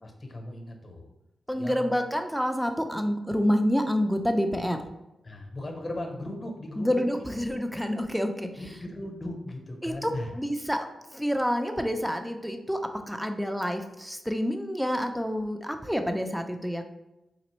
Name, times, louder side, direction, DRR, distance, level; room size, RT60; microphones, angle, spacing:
voice 1, 0.0-1.1 1.5-2.0 5.2-7.0 8.6-10.3, left 1 dB, 35° left, 3 dB, 0.9 m, -37 dB
voice 2, 1.5-4.8 6.8-8.5 9.8-12.8 13.1-16.8, equal, ahead, 6 dB, 0.5 m, -28 dB
4.0 x 2.5 x 3.0 m, 0.95 s
cardioid pair, 55°, 0 cm